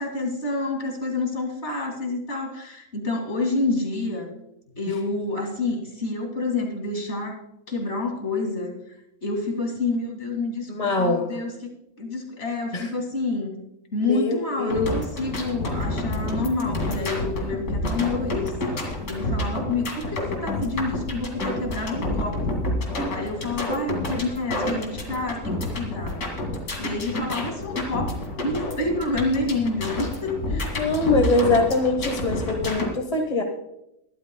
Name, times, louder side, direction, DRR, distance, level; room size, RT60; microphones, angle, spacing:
voice 1, 0.0-4.3 4.8-7.4 7.7-11.5 12.0-13.5 13.9-18.5 19.1-22.6 23.1-26.3 26.8-30.8, left 2 dB, 45° left, 2 dB, 2.6 m, -28 dB
voice 2, 10.7-11.3 12.7-12.9 14.1-14.9 30.5-33.4, left 3 dB, 30° left, 4 dB, 1.2 m, -23 dB
sound 1, 14.7-32.9, left 1 dB, 80° left, 2.8 m, -29 dB
22.5 x 12.0 x 2.2 m, 0.82 s
omnidirectional pair, 1.6 m